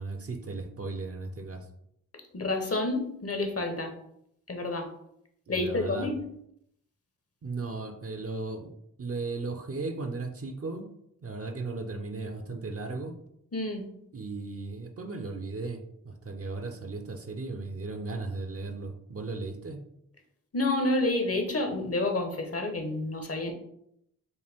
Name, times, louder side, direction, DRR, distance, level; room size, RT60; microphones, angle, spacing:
voice 1, 0.0-1.7 5.5-6.1 7.4-10.9 11.2-13.2 14.1-19.8, right 3 dB, 40° right, 5 dB, 0.7 m, -36 dB
voice 2, 2.3-3.9 4.5-4.9 5.5-6.2 13.5-13.9 20.5-23.5, left 2 dB, 45° left, 4 dB, 1.0 m, -29 dB
5.4 x 2.2 x 3.5 m, 0.75 s
cardioid pair, 40°, 35 cm